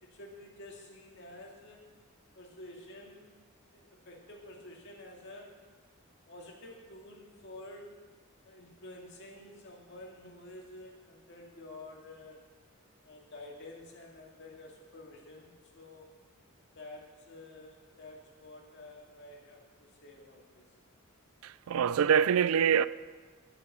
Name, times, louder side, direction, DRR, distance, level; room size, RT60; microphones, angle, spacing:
voice 1, 0.0-1.8 2.3-3.3 3.7-5.5 6.3-8.0 8.4-12.4 13.0-16.1 16.7-20.7, left 1 dB, 55° left, 2.2 m, -50 dB
voice 2, 21.4-22.9, right 8 dB, 75° right, 0.3 m, -25 dB
21.0 x 7.3 x 4.2 m
head